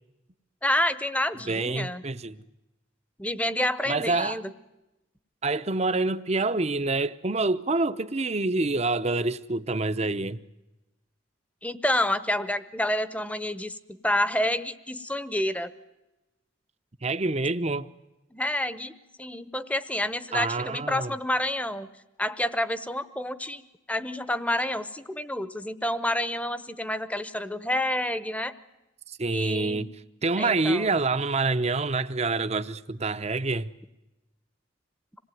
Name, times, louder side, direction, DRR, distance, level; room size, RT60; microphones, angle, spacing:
voice 1, 0.6-2.0 3.2-4.4 11.6-15.7 18.3-18.9 19.2-21.9 22.2-23.6 23.9-28.5 29.3-29.9 30.4-30.9, left 1 dB, 5° left, 1.0 m, -28 dB
voice 2, 1.5-2.4 3.9-4.4 5.4-10.4 17.0-17.9 20.3-21.1 29.1-33.7, right 3 dB, 35° right, 0.8 m, -27 dB
26.5 x 19.5 x 9.2 m
head